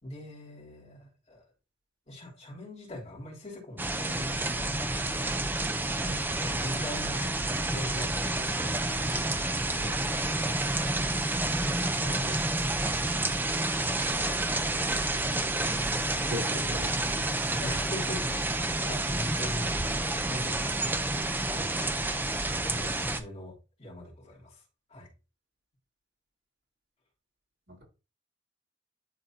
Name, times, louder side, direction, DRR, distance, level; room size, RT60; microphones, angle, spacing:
voice 1, 0.0-1.5 2.1-4.8 5.9-9.3 9.6-11.0 11.4-13.1 17.6-24.6 24.9-25.1, left 1 dB, 35° left, 3.1 m, -42 dB
sound 1, 3.8-23.2, right 2 dB, 10° right, 0.6 m, -29 dB
voice 2, 16.3-17.3 27.7-27.8, left 1 dB, 80° right, 4.0 m, -38 dB
11.0 x 4.1 x 2.7 m
head